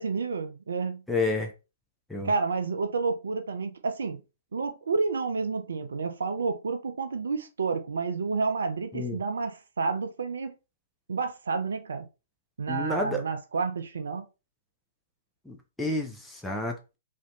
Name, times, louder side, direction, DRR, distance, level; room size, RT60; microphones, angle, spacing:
voice 1, 0.0-1.0 2.2-4.2 4.5-10.5 11.1-12.1 12.6-14.2, right 4 dB, 70° right, 0.3 m, -30 dB
voice 2, 1.1-1.5 2.1-2.3 8.9-9.2 12.7-13.2 15.5-17.0, left 2 dB, 5° left, 0.4 m, -30 dB
2.5 x 2.1 x 2.6 m
figure-of-eight pair, 115°, 0 cm